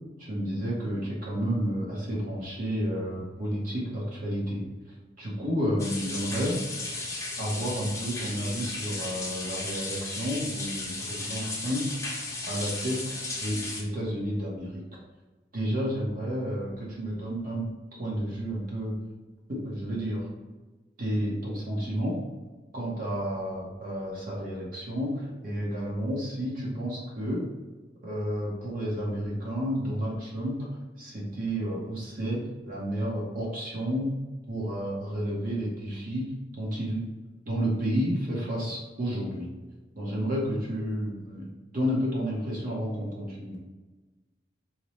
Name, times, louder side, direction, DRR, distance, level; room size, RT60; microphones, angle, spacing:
voice 1, 0.2-4.6 5.2-6.6 7.4-12.0 12.4-14.8 15.5-19.0 19.5-20.3 21.0-22.2 22.7-27.4 28.0-30.7 31.0-34.2 34.5-37.0 37.4-39.5 39.9-41.5 41.7-43.6, equal, 50° right, -5 dB, 0.8 m, -31 dB
sound 1, 5.8-13.8, left 2 dB, 15° left, 0.7 m, -35 dB
4.2 x 2.0 x 3.0 m, 1.2 s
head